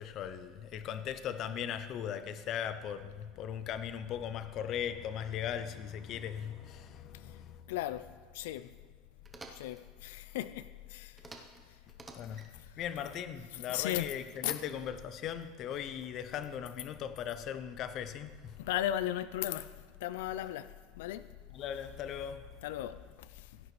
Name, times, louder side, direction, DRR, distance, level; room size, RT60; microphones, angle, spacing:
voice 1, 0.0-8.0 12.1-18.7 21.5-23.1, left 9 dB, 35° left, 0.5 m, -39 dB
voice 2, 7.7-8.1 8.3-8.7 9.5-11.2 12.3-12.7 13.5-14.1 14.4-14.5 18.6-19.7 20.0-21.3 22.6-23.6, left 13 dB, 85° left, 0.3 m, -36 dB
sound 1, 9.2-9.8 11.2-11.6 11.9-12.5 14.3-15.0, right 3 dB, 15° right, 0.8 m, -50 dB
16.0 x 9.3 x 3.1 m
cardioid pair, 165°, 0 cm